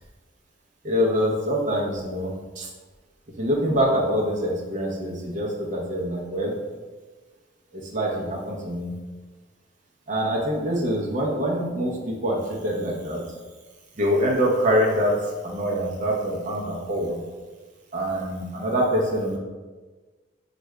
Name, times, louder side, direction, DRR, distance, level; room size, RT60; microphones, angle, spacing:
voice 1, 0.8-2.7 3.4-6.5 7.7-8.9 10.1-13.2 14.0-15.2 15.4-17.2 17.9-19.4, equal, 45° right, -2 dB, 0.8 m, -25 dB
4.7 x 2.5 x 3.2 m, 1.3 s
head